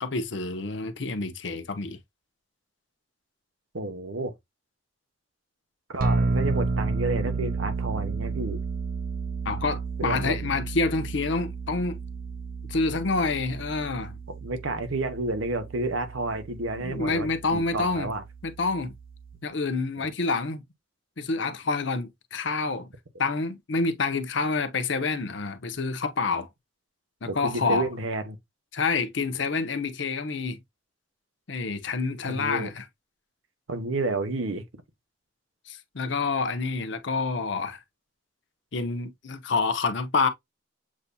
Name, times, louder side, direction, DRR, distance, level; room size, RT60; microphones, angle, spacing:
voice 1, 0.0-2.0 9.4-12.0 12.7-14.2 16.8-18.1 18.4-18.9 19.4-20.6 21.2-22.9 23.2-26.5 27.2-27.9 28.7-30.6 31.5-32.8 35.7-37.8 38.7-40.3, left 3 dB, 65° left, 0.8 m, -28 dB
voice 2, 3.7-4.3 5.9-8.6 10.0-10.5 14.4-18.2 27.2-28.4 32.3-32.7 33.7-34.6, right 2 dB, 85° right, 1.0 m, -30 dB
sound 1, 6.0-19.4, right 4 dB, 45° right, 0.6 m, -32 dB
7.3 x 2.7 x 2.2 m
head